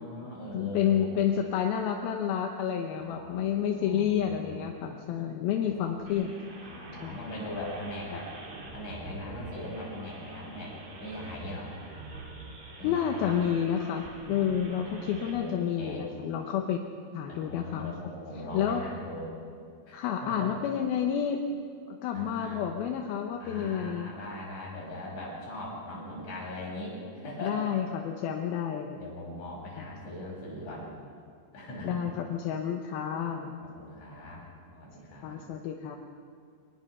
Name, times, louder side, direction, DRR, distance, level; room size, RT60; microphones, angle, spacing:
voice 1, 0.0-1.2 3.0-4.9 5.7-5.9 6.6-8.3 8.7-11.7 12.8-13.4 14.2-16.0 17.3-19.3 19.9-20.5 22.1-22.6 23.4-27.6 28.6-30.9 31.5-32.0 32.8-34.4 34.7-35.5, left 1 dB, 45° left, -4 dB, 7.3 m, -41 dB
voice 2, 0.5-6.3 7.0-7.3 12.8-16.8 17.1-17.9 18.5-18.8 19.9-21.4 21.9-24.1 27.4-29.0 29.8-29.9 31.8-33.5 35.2-36.0, left 9 dB, 75° left, 3 dB, 2.7 m, -30 dB
sound 1, 6.1-15.3, right 2 dB, 80° right, 5.5 m, -46 dB
23.0 x 19.5 x 5.7 m, 2.2 s
omnidirectional pair, 4.8 m